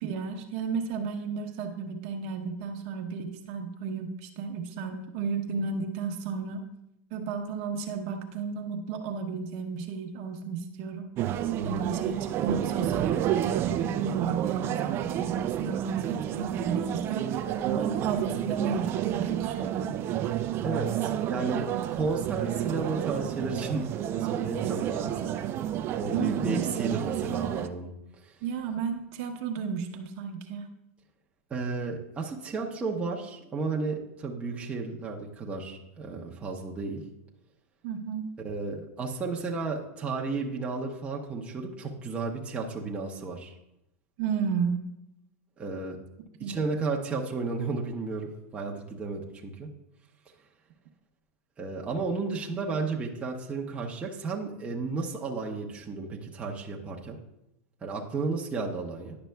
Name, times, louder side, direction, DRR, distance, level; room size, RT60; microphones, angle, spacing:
voice 1, 0.0-6.6 7.1-11.1 11.6-12.2 12.4-19.9 26.1-26.6 28.4-30.7 37.8-38.3 44.2-44.8 46.4-46.6, right 6 dB, 50° right, 4 dB, 0.8 m, -33 dB
sound 1, 11.2-27.7, right 11 dB, 30° right, 0.3 m, -30 dB
voice 2, 11.5-11.9 20.6-25.3 25.9-27.9 28.2-28.3 31.5-37.0 38.4-43.5 45.6-46.0 46.4-49.7 51.6-57.2 57.8-59.2, right 4 dB, 15° right, -2 dB, 0.7 m, -33 dB
10.5 x 6.0 x 2.2 m, 0.84 s
supercardioid pair, 140°, 8 cm